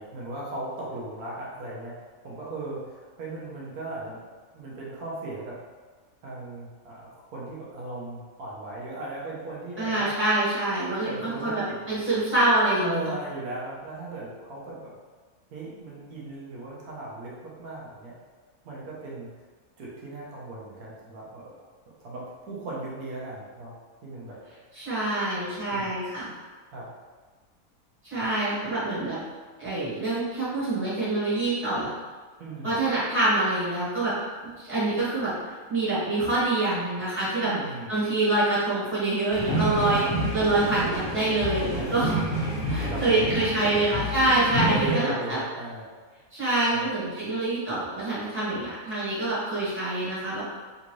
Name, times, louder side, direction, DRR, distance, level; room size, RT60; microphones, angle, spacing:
voice 1, 0.0-1.9 2.2-4.2 4.5-5.6 6.2-10.1 11.0-11.8 12.8-14.9 15.5-18.1 18.6-19.3 19.8-21.6 22.0-23.7 24.0-24.4 25.7-25.9 26.7-26.9 32.4-32.8 37.4-37.9 41.7-42.2 42.5-43.8 44.6-45.8 46.7-46.8, right 2 dB, 85° right, -6 dB, 1.3 m, -37 dB
voice 2, 9.8-13.1 24.7-26.3 28.0-29.2 29.6-31.9 32.6-34.1 34.4-35.3 35.7-37.5 37.9-40.0 40.3-42.1 42.7-45.4 46.3-50.4, right 2 dB, 10° right, -11 dB, 1.4 m, -26 dB
sound 1, 39.3-44.9, right 1 dB, 30° left, 1.5 m, -29 dB
3.5 x 2.6 x 3.0 m, 1.4 s
omnidirectional pair, 1.5 m